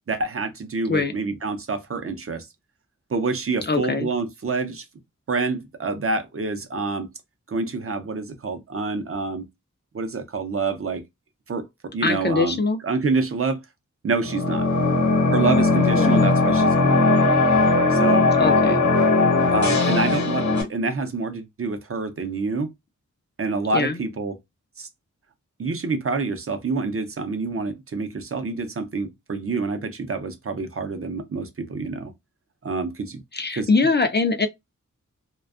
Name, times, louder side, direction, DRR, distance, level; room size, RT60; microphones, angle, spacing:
voice 1, 0.1-2.5 3.1-4.9 5.3-7.1 7.5-9.5 9.9-11.0 11.5-11.7 11.9-13.6 14.0-14.7 15.3-17.0 17.9-18.3 19.5-22.7 23.4-24.4 24.8-24.9 25.6-32.1 32.6-33.2 33.5-33.7, right 4 dB, 45° right, 0.6 m, -27 dB
voice 2, 3.7-4.1 12.0-12.8 15.9-16.2 18.4-18.9 23.7-24.0 33.3-34.5, left 3 dB, 35° left, 0.4 m, -22 dB
sound 1, 14.2-20.6, left 3 dB, 65° left, 0.9 m, -19 dB
2.4 x 2.2 x 2.4 m
wide cardioid pair, 90°, 31 cm